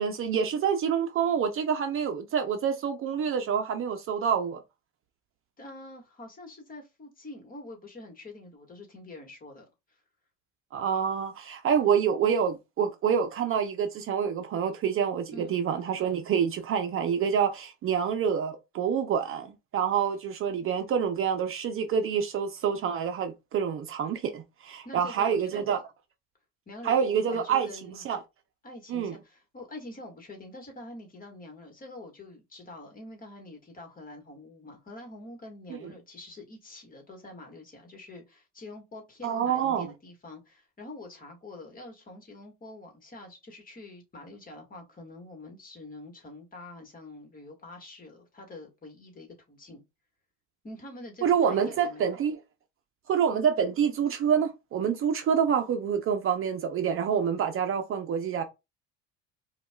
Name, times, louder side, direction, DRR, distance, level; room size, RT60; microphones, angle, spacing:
voice 1, 0.0-4.6 10.7-25.8 26.8-27.7 28.0-28.2 28.9-29.1 35.7-35.8 39.2-39.9 51.2-52.4 53.1-58.4, right 7 dB, 40° right, 0.6 m, -27 dB
voice 2, 5.6-9.7 15.3-15.5 24.8-25.8 26.7-28.0 28.6-49.8 50.6-52.0, left 2 dB, 25° left, 1.4 m, -45 dB
5.0 x 2.4 x 2.2 m
supercardioid pair, 105°, 32 cm